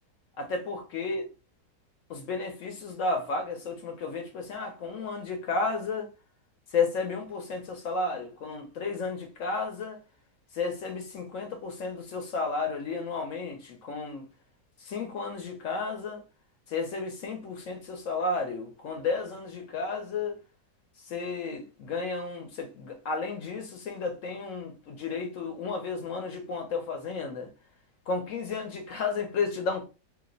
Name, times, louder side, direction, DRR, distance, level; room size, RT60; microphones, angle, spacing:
voice 1, 0.4-1.2 2.1-6.1 6.7-10.0 10.5-14.3 14.8-16.2 16.7-20.4 21.0-27.5 28.1-29.9, left 4 dB, 65° left, 0.9 m, -32 dB
2.9 x 2.0 x 3.7 m
omnidirectional pair, 1.7 m